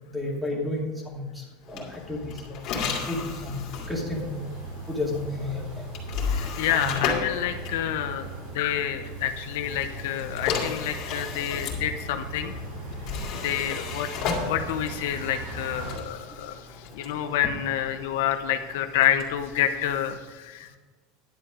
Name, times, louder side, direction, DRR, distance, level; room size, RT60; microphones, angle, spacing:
voice 1, 0.1-2.2 2.5-3.6 3.9-4.5 4.9-5.8 6.7-7.0 15.9-16.0, left 2 dB, 5° right, -1 dB, 2.4 m, -32 dB
sound 1, 1.6-8.6 9.6-20.2, left 5 dB, 45° left, 2.7 m, -35 dB
sound 2, 3.7-16.0, right 2 dB, 70° right, 2.8 m, -39 dB
voice 2, 6.3-8.3 8.5-12.5 13.4-14.1 14.4-16.7 16.9-20.8, left 10 dB, 75° left, 8 dB, 0.8 m, -28 dB
11.0 x 7.5 x 5.0 m, 1.4 s
supercardioid pair, 155°, 0 cm